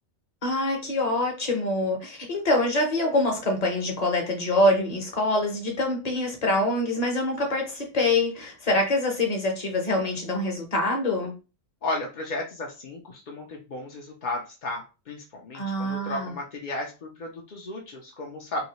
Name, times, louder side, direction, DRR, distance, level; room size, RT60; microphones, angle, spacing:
voice 1, 0.4-11.3 15.5-16.3, left 1 dB, 35° left, 2 dB, 0.8 m, -25 dB
voice 2, 11.8-18.7, left 2 dB, 60° left, -1 dB, 0.5 m, -34 dB
2.8 x 2.6 x 3.0 m, 0.32 s
omnidirectional pair, 1.4 m